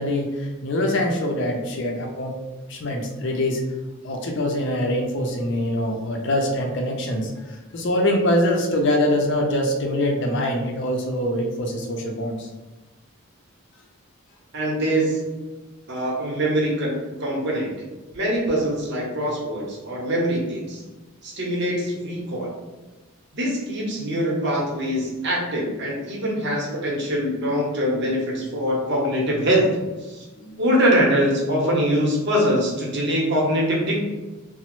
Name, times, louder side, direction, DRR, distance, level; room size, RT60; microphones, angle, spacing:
voice 1, 0.0-2.4 2.7-3.6 4.0-12.5 30.4-30.5, left 1 dB, 55° left, 2 dB, 0.5 m, -24 dB
voice 2, 14.5-15.3 15.9-17.7 18.1-20.8 21.2-22.5 23.3-29.7 30.0-30.3 30.6-34.0, equal, 55° right, -2 dB, 0.8 m, -23 dB
2.9 x 2.0 x 3.0 m, 1.2 s
head